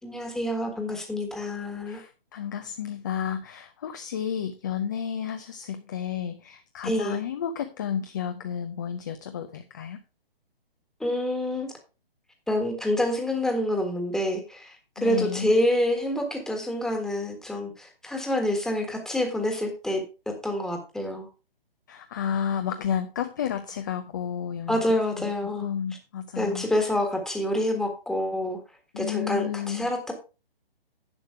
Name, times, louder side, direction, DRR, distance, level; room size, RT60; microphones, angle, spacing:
voice 1, 0.0-2.0 6.8-7.2 11.0-11.7 12.5-14.8 15.0-21.3 24.7-25.7 26.4-28.6 29.0-30.1, left 1 dB, ahead, 3 dB, 1.4 m, -27 dB
voice 2, 1.9-10.0 15.0-15.5 21.9-24.8 25.2-25.3 25.6-26.7 28.9-29.9, left 8 dB, 20° left, 9 dB, 0.4 m, -31 dB
10.5 x 6.4 x 4.7 m, 0.31 s
figure-of-eight pair, 145°, 30 cm